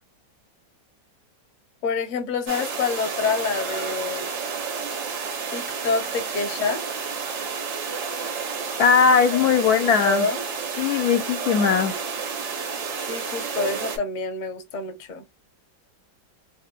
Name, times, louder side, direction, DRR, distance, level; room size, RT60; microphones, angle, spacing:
voice 1, 1.8-4.3 5.5-6.8 9.3-9.5 10.0-10.4 13.1-15.3, left 4 dB, 40° left, 0.7 m, -27 dB
sound 1, 2.5-14.0, right 5 dB, 85° right, 1.7 m, -30 dB
voice 2, 8.8-10.3 10.8-12.0, left 6 dB, 70° left, 0.9 m, -19 dB
4.2 x 2.1 x 2.4 m
omnidirectional pair, 2.0 m